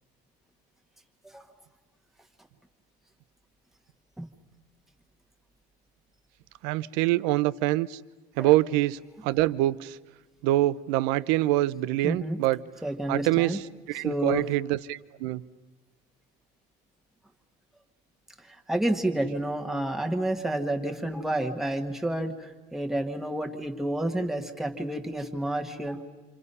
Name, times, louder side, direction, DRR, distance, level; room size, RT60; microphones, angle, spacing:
voice 1, 6.6-8.0 8.4-10.0 10.4-12.6 13.1-13.6 13.9-15.4, right 16 dB, 85° right, 17 dB, 0.7 m, -25 dB
voice 2, 12.0-12.4 12.8-13.6 13.9-14.5 18.4-26.0, right 1 dB, ahead, 3 dB, 1.3 m, -30 dB
28.0 x 26.5 x 5.5 m, 1.2 s
cardioid pair, 175°, 20 cm